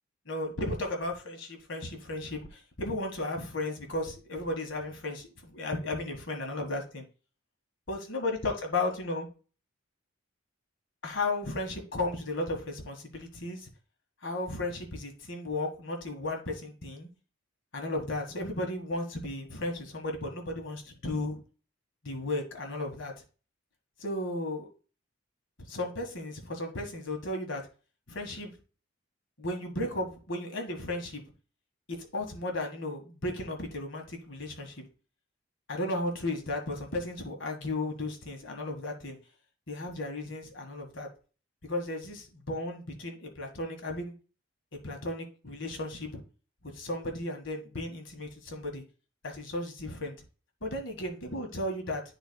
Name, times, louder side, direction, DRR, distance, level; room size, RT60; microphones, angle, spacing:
voice 1, 0.2-7.0 7.9-9.3 11.0-13.7 14.2-17.1 17.7-21.4 22.0-23.1 24.0-24.7 25.7-27.6 28.1-28.5 29.4-31.2 31.9-34.8 35.7-39.2 39.7-41.1 41.6-44.1 44.8-46.2 46.6-48.8 49.2-50.1 50.6-52.0, left 2 dB, 65° left, 2 dB, 1.5 m, -34 dB
11.5 x 4.0 x 2.2 m, 0.36 s
head